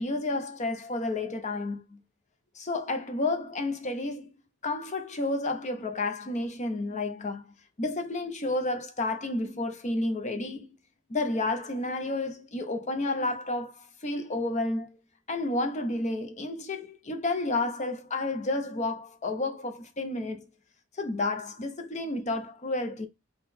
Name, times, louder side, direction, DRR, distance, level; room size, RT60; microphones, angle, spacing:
voice 1, 0.0-2.0 2.5-4.3 4.6-7.5 7.8-10.7 11.1-14.9 15.3-20.5 20.9-23.1, left 2 dB, 35° left, 0.6 m, -31 dB
3.8 x 2.3 x 4.1 m
head